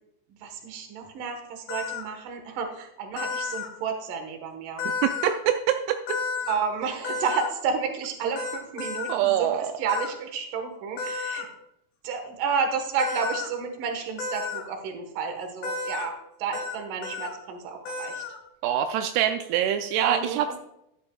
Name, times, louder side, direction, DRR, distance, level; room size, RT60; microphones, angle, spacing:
voice 1, 0.3-4.8 6.5-11.5 12.0-18.2 20.0-20.6, right 5 dB, 65° right, 4 dB, 2.7 m, -31 dB
sound 1, 1.7-2.0 3.2-3.7 4.8-5.3 6.1-6.6 7.0-7.5 8.4-9.1 9.9-10.1 11.0-11.4 13.0-13.5 14.2-14.6 15.6-16.1 16.5-16.8 17.0-17.3 17.9-18.4, left 4 dB, 70° left, 3.0 m, -32 dB
voice 2, 5.0-6.2 9.1-9.7 18.6-20.6, right 10 dB, 85° right, 6 dB, 2.6 m, -25 dB
12.0 x 10.5 x 2.3 m, 0.82 s
omnidirectional pair, 4.6 m